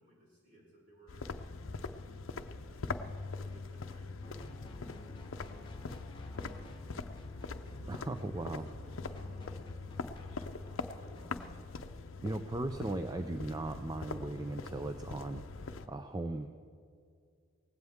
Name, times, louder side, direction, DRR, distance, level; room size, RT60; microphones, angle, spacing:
voice 1, 0.0-3.0 3.4-7.1 7.7-11.4, equal, 40° right, -4 dB, 4.6 m, -61 dB
sound 1, 1.1-15.9, left 3 dB, 65° left, 0.6 m, -43 dB
sound 2, 4.2-11.6, left 1 dB, 20° left, 1.1 m, -52 dB
voice 2, 7.9-8.6 12.2-16.5, right 2 dB, 15° right, 7 dB, 0.4 m, -38 dB
18.0 x 16.0 x 3.6 m, 2.3 s
head